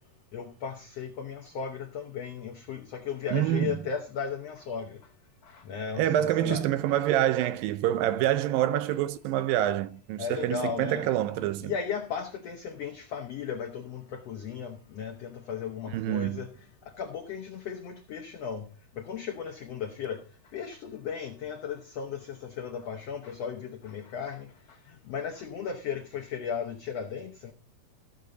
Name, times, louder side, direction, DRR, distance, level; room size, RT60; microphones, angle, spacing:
voice 1, 0.3-5.0 5.4-6.6 10.2-11.1 11.6-18.7 18.9-20.2 20.5-27.5, left 7 dB, 75° left, 1.4 m, -36 dB
voice 2, 3.3-3.8 6.0-11.7 15.9-16.4, right 12 dB, 80° right, 2.3 m, -26 dB
15.5 x 6.5 x 3.9 m
omnidirectional pair, 4.2 m